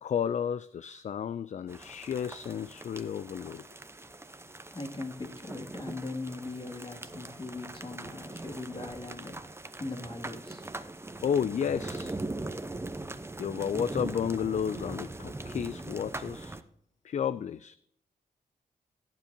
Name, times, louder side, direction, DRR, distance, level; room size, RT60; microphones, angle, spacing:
voice 1, 0.0-3.7 11.2-12.2 13.4-16.6 17.0-17.8, left 8 dB, 50° left, 0.4 m, -32 dB
sound 1, 1.7-16.6, right 2 dB, 15° right, 0.8 m, -41 dB
voice 2, 4.1-10.7, left 2 dB, 35° left, 2.4 m, -40 dB
17.0 x 7.3 x 2.8 m
cardioid pair, 60°, 16 cm